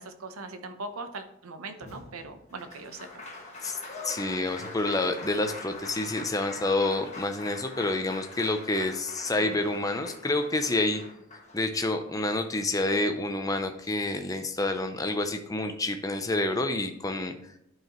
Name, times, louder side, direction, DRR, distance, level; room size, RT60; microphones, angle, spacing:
voice 1, 0.0-3.1 9.4-9.5, right 3 dB, 80° right, 8 dB, 0.7 m, -40 dB
Applause, 1.8-12.1 13.4-13.5 13.8-14.8, left 3 dB, 30° left, 1.3 m, -43 dB
voice 2, 3.6-11.0 11.5-17.3, left 2 dB, 15° left, 7 dB, 0.5 m, -28 dB
10.5 x 4.7 x 3.0 m, 0.76 s
head